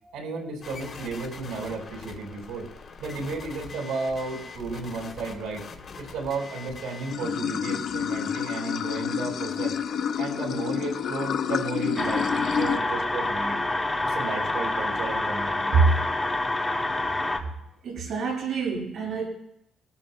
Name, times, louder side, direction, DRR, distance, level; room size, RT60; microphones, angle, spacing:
voice 1, 0.1-2.7 3.0-5.6 6.0-9.7 10.2-13.6 14.0-15.7, right 3 dB, 85° right, 1 dB, 4.7 m, -33 dB
sound 1, 0.6-7.1, left 4 dB, 45° left, 2.9 m, -43 dB
Water / Sink (filling or washing), 7.1-12.8, left 7 dB, 70° left, 0.9 m, -28 dB
sound 2, 12.0-17.4, left 2 dB, 15° left, 1.9 m, -27 dB
voice 2, 15.7-16.1 17.3-17.6 17.8-19.3, right 4 dB, 65° right, -2 dB, 6.8 m, -25 dB
24.0 x 13.5 x 2.2 m, 0.75 s
cardioid pair, 90°, 0 cm